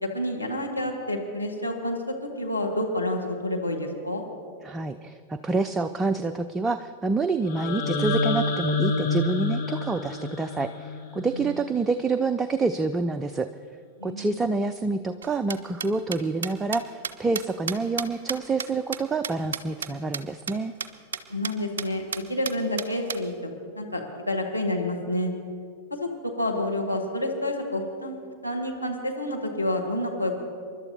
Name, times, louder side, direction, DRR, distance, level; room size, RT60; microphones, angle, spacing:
voice 1, 0.0-4.2 11.3-11.5 14.0-14.4 21.3-22.0 22.3-23.5 23.7-25.3 25.9-30.5, left 1 dB, 85° left, 1 dB, 1.6 m, -29 dB
voice 2, 4.6-13.5 14.0-20.7, right 3 dB, 15° right, 9 dB, 0.4 m, -27 dB
sound 1, 7.5-11.5, left 3 dB, 45° left, 1.5 m, -28 dB
sound 2, 15.2-19.9 20.1-20.2 20.5-20.6 20.8-20.9 21.1-21.5 21.8-21.9 22.1-23.2, right 6 dB, 65° right, 0.6 m, -32 dB
28.0 x 12.0 x 2.8 m, 2.2 s
figure-of-eight pair, 90°, 0 cm